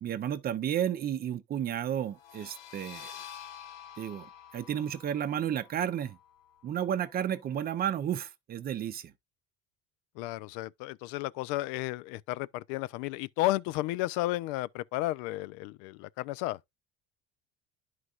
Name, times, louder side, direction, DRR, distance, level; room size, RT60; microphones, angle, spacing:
voice 1, 0.0-3.2 4.0-6.2 6.6-9.1, right 10 dB, 30° right, 0.6 m, -32 dB
sound 1, 2.1-7.6, left 9 dB, 60° left, 0.9 m, -49 dB
voice 2, 10.2-16.6, left 17 dB, 85° left, 0.5 m, -33 dB
11.0 x 4.7 x 2.4 m
cardioid pair, 145°, 29 cm